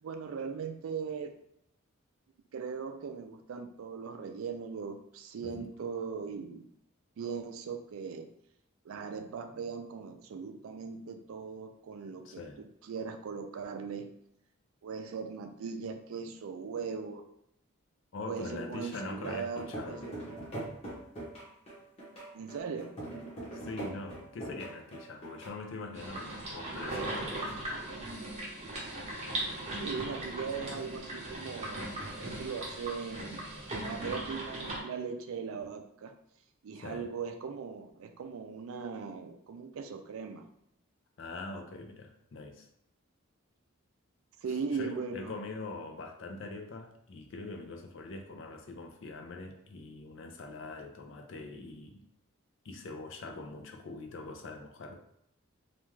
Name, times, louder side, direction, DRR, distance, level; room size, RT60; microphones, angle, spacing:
voice 1, 0.0-1.3 2.5-6.7 7.2-8.3 8.8-14.1 14.8-17.2 18.2-20.3 22.3-23.1 29.7-36.1 36.6-40.5 44.4-45.3, right 5 dB, 80° right, 6 dB, 0.4 m, -39 dB
voice 2, 12.2-12.6 18.1-20.1 23.5-27.7 36.8-37.1 41.2-42.7 44.7-52.0 52.6-55.0, left 3 dB, 60° left, 4 dB, 0.4 m, -43 dB
sound 1, 18.7-25.5, right 1 dB, 30° left, 0.8 m, -42 dB
sound 2, 25.9-34.8, right 1 dB, 30° right, 0.7 m, -38 dB
2.4 x 2.2 x 3.1 m, 0.75 s
head